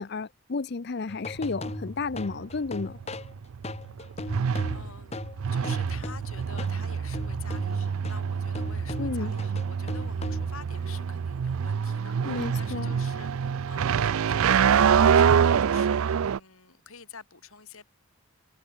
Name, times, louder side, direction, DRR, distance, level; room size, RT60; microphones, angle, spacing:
voice 1, 0.0-3.0 9.0-9.3 12.2-12.9, left 4 dB, 50° left, 0.5 m, -32 dB
sound 1, 1.1-6.8 7.1-10.7, left 2 dB, 30° left, 1.1 m, -38 dB
sound 2, 1.3-16.4, right 7 dB, 75° right, 0.4 m, -26 dB
voice 2, 4.2-5.2 5.5-17.9, left 6 dB, 75° left, 4.3 m, -48 dB
open air
head